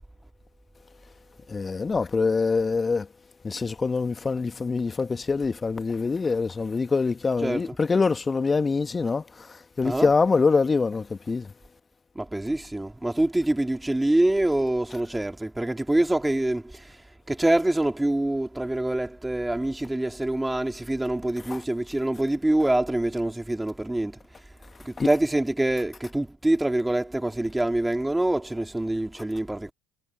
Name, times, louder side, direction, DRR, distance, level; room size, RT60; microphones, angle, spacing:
voice 1, 1.5-3.1 3.4-11.5 21.4-21.6 25.0-25.1, left 4 dB, 25° left, 1.8 m, -25 dB
voice 2, 12.2-16.9 17.3-24.2 24.8-29.7, right 1 dB, 10° right, 3.4 m, -25 dB
figure-of-eight pair, 60°, 0 cm